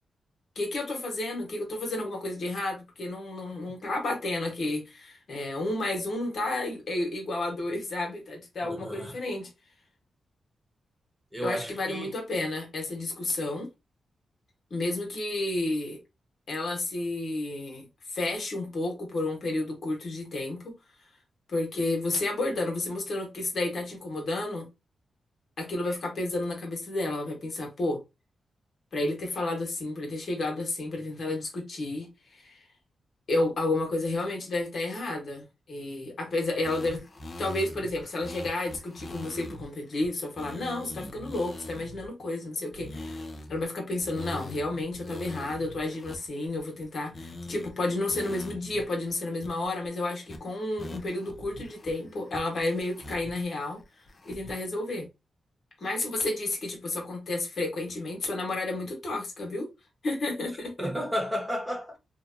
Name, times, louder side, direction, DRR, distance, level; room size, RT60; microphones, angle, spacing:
voice 1, 0.5-9.5 11.4-13.7 14.7-16.0 16.5-20.7 21.5-24.7 25.6-28.0 28.9-32.6 33.3-37.0 37.4-43.2 43.5-53.8 54.2-55.0 55.8-59.7 60.0-60.9, left 2 dB, 65° left, 1.1 m, -31 dB
voice 2, 8.6-9.2 11.3-12.1 60.8-62.0, equal, 5° right, 1.1 m, -32 dB
sound 1, 36.6-39.6 40.0-40.1 40.4-42.1 42.7-43.6 44.0-46.8 47.1-47.7 48.1-48.8 49.1-49.2 49.4-49.9 50.3-50.4 50.8-51.9 52.3-53.4 53.8-54.6, left 1 dB, 45° left, 0.5 m, -42 dB
2.7 x 2.2 x 2.5 m
supercardioid pair, 50°, 0 cm